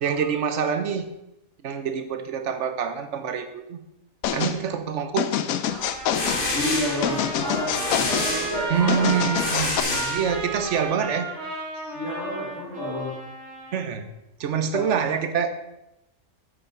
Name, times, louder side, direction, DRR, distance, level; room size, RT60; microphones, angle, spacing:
voice 1, 0.0-1.1 1.6-3.8 4.3-5.4 8.7-11.3 13.7-14.0 14.4-15.5, right 7 dB, 60° right, 9 dB, 1.1 m, -26 dB
sound 1, 4.2-4.6 5.2-6.4 7.0-8.3 8.9-9.8, left 10 dB, 85° left, 1.0 m, -26 dB
Trumpet, 5.7-13.9, right 3 dB, 85° right, 2.1 m, -34 dB
sound 2, 5.9-10.7, left 3 dB, 40° left, 1.3 m, -29 dB
voice 2, 6.5-9.1 11.9-13.1 14.7-15.0, equal, 60° left, -10 dB, 3.3 m, -30 dB
7.4 x 6.8 x 5.7 m, 0.90 s
omnidirectional pair, 1.4 m